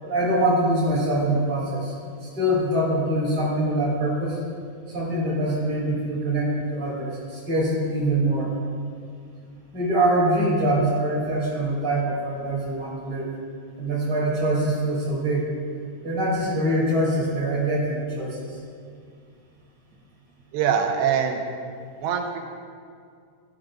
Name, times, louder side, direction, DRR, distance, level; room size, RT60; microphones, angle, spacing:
voice 1, 0.0-1.9 2.3-4.4 4.9-8.5 9.7-13.3 13.8-15.5 16.0-18.6, right 1 dB, 35° right, -6 dB, 3.2 m, -24 dB
voice 2, 20.5-21.4 22.0-22.4, right 7 dB, 85° right, 3 dB, 3.1 m, -23 dB
15.5 x 14.5 x 2.5 m, 2.3 s
omnidirectional pair, 4.9 m